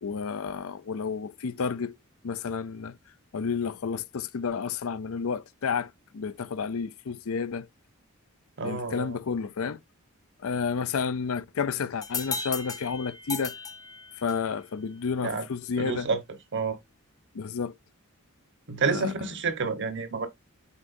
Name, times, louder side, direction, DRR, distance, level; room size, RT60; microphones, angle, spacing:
voice 1, 0.0-2.0 2.2-3.0 3.3-7.7 8.6-9.8 10.4-13.6 14.2-16.1 17.3-17.7 18.9-19.1, left 5 dB, 65° left, 0.5 m, -31 dB
voice 2, 8.6-9.2 15.2-15.4 15.8-16.2 16.5-16.8 18.7-20.3, right 4 dB, 55° right, 1.1 m, -29 dB
sound 1, 12.0-14.6, left 4 dB, 15° left, 0.8 m, -36 dB
8.3 x 4.7 x 2.6 m
head